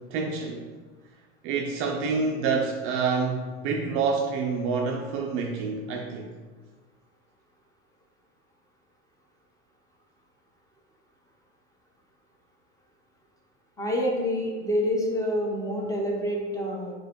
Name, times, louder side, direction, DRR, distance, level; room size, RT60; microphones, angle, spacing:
voice 1, 0.1-0.7 1.4-6.3, right 5 dB, 40° right, 1 dB, 0.4 m, -27 dB
voice 2, 13.8-16.9, equal, 10° left, -2 dB, 0.7 m, -27 dB
3.8 x 3.1 x 2.9 m, 1.4 s
hypercardioid pair, 100°, 36 cm